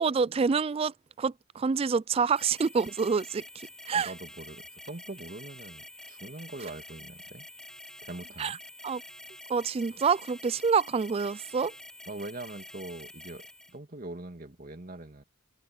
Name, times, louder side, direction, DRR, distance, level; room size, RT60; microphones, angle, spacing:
voice 1, 0.0-4.1 8.4-8.6 8.8-9.0 9.5-11.7, right 5 dB, 30° right, 0.3 m, -27 dB
sound 1, 2.4-13.8, left 1 dB, 5° left, 2.0 m, -48 dB
voice 2, 3.9-7.5 8.0-8.6 12.1-15.2, right 2 dB, 45° right, 2.2 m, -42 dB
head